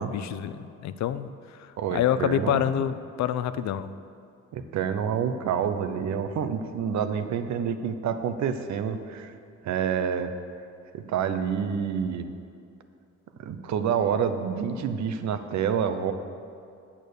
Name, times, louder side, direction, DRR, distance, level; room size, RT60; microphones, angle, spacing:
voice 1, 0.0-1.3 1.6-3.9, left 10 dB, 65° left, 13 dB, 0.5 m, -27 dB
voice 2, 1.8-2.8 4.5-9.3 9.6-10.3 10.9-12.3 13.4-16.1, right 7 dB, 65° right, 9 dB, 0.7 m, -28 dB
8.7 x 6.7 x 6.6 m, 2.4 s
cardioid pair, 90°, 30 cm